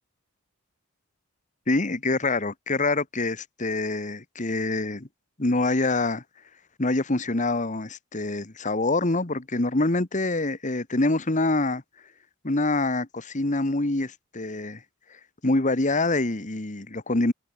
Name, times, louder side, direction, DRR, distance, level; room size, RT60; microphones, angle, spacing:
voice 1, 1.7-5.1 5.4-6.2 6.8-11.8 12.4-14.8 15.4-17.3, left 2 dB, 35° left, 1.3 m, -25 dB
head